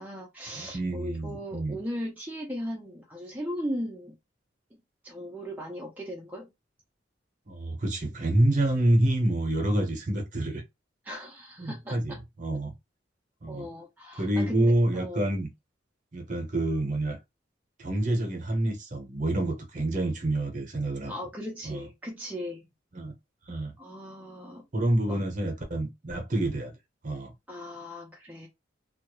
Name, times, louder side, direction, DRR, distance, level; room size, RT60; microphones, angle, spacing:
voice 1, 0.0-4.2 4.7-4.8 5.0-6.5 11.1-12.2 13.5-15.3 21.1-22.7 23.8-24.6 25.1-25.2 27.5-28.5, equal, 10° right, 0.4 m, -37 dB
voice 2, 0.6-1.8 7.5-10.6 11.6-12.7 13.4-13.7 14.2-15.5 16.1-17.2 17.8-21.1 21.6-21.8 22.9-23.1 23.5-23.7 24.7-26.7 27.0-27.3, right 1 dB, 40° right, 0.7 m, -27 dB
2.2 x 2.1 x 2.9 m
head